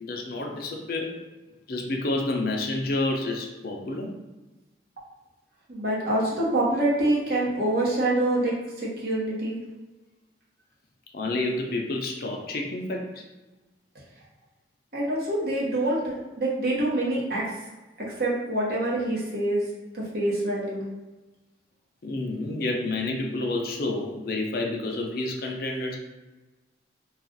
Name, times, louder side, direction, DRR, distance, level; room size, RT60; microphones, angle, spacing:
voice 1, 0.0-1.2 1.7-4.1 11.1-13.2 22.0-26.0, left 2 dB, 55° left, 1 dB, 0.5 m, -29 dB
voice 2, 5.7-8.6 8.8-9.6 14.9-17.4 18.0-19.6 19.9-20.8, right 1 dB, 60° right, -5 dB, 0.9 m, -26 dB
2.4 x 2.3 x 3.8 m, 1.1 s
head